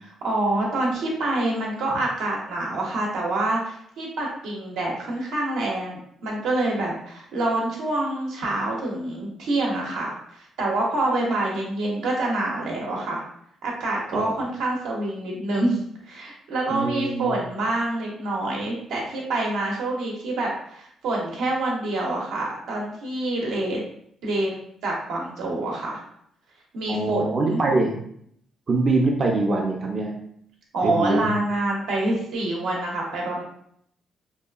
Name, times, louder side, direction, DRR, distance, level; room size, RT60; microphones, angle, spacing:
voice 1, 0.0-13.2 13.6-23.8 24.2-24.5 24.8-26.0 26.7-27.6 30.7-33.4, right 2 dB, 90° right, -2 dB, 0.7 m, -26 dB
voice 2, 16.7-17.4 26.9-28.0 28.7-30.2 30.8-31.3, right 2 dB, 45° right, 0 dB, 0.4 m, -23 dB
2.7 x 2.3 x 2.3 m, 0.69 s
cardioid pair, 90°, 0 cm